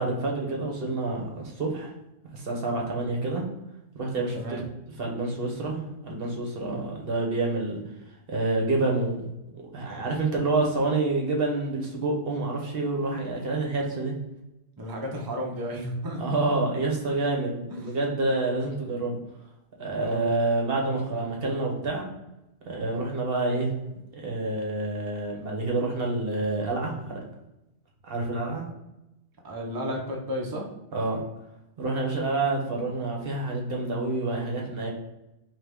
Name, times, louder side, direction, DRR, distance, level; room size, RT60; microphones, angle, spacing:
voice 1, 0.0-1.9 2.3-3.4 3.9-4.6 5.0-7.8 8.3-9.2 9.7-14.2 16.2-19.2 19.8-22.0 22.6-23.7 24.1-27.2 28.0-28.7 30.9-31.2 31.8-34.9, right 2 dB, 50° right, 0 dB, 1.0 m, -28 dB
voice 2, 14.8-16.4 17.4-18.0 20.0-20.3 29.4-30.7, equal, 25° right, -1 dB, 0.5 m, -33 dB
3.8 x 2.8 x 3.5 m, 0.90 s
omnidirectional pair, 1.3 m